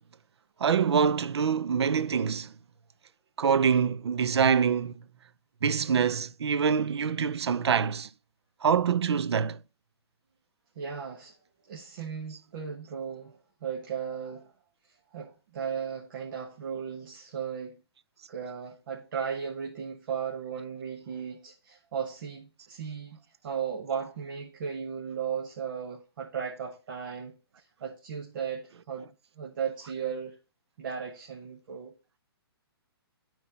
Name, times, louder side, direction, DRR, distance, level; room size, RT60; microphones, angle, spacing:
voice 1, 0.6-2.5 3.4-4.9 5.6-8.1 8.6-9.6, right 6 dB, 85° right, 0.5 m, -25 dB
voice 2, 10.7-11.3 11.7-14.5 15.1-17.8 18.3-27.4 27.8-29.1 29.4-30.4 30.8-31.9, right 7 dB, 55° right, 1.4 m, -36 dB
11.5 x 4.4 x 2.7 m
hypercardioid pair, 155°, 13 cm